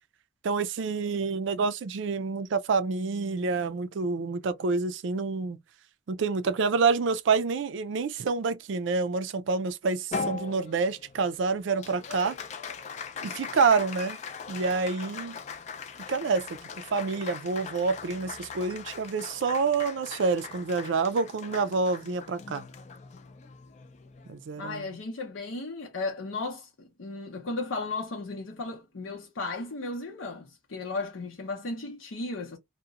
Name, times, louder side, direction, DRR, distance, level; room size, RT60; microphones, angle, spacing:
voice 1, 0.4-5.6 6.1-12.4 13.2-14.2 14.5-15.4 16.1-16.4 16.7-22.6 24.3-24.9, right 4 dB, 70° right, 0.4 m, -27 dB
Applause, 10.1-24.8, left 5 dB, 35° left, 0.3 m, -40 dB
voice 2, 24.6-32.6, left 3 dB, 80° left, 0.7 m, -35 dB
2.8 x 2.1 x 2.4 m
head